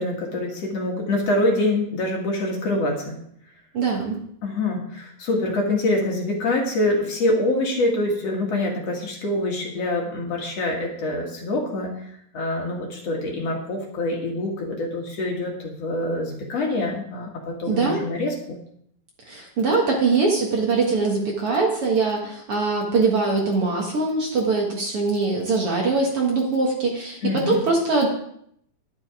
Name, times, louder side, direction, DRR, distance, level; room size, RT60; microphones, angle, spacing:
voice 1, 0.0-3.2 4.4-18.4 27.2-27.6, left 2 dB, 55° left, 0 dB, 2.6 m, -25 dB
voice 2, 3.7-4.2 17.7-18.0 19.3-28.1, right 3 dB, 50° right, 0 dB, 2.1 m, -22 dB
10.5 x 10.5 x 4.9 m, 0.69 s
omnidirectional pair, 3.8 m